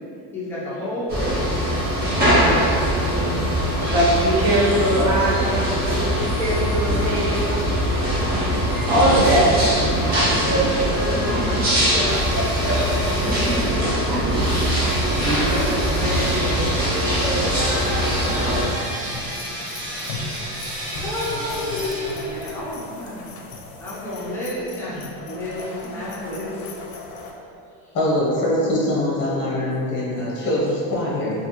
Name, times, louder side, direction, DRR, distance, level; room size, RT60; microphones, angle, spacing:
voice 1, 0.3-1.4 3.0-3.8 9.8-10.4 11.1-11.6 13.2-14.4 15.2-19.3 19.6-20.0 21.0-23.3 23.8-26.8, equal, 5° left, -10 dB, 0.3 m, -30 dB
sound 1, 1.1-18.6, equal, 25° right, 0.6 m, -22 dB
voice 2, 3.8-7.7 8.6-9.5 10.1-12.4 12.8-13.1 14.1-14.2 14.8-14.9, right 1 dB, 60° right, -5 dB, 0.7 m, -22 dB
sound 2, 12.1-22.6, right 1 dB, 75° right, 1.2 m, -33 dB
sound 3, 19.1-27.3, left 3 dB, 70° left, 0.5 m, -37 dB
voice 3, 27.9-31.3, left 1 dB, 30° left, -7 dB, 0.8 m, -23 dB
2.5 x 2.3 x 2.8 m, 2.5 s
cardioid pair, 165°, 39 cm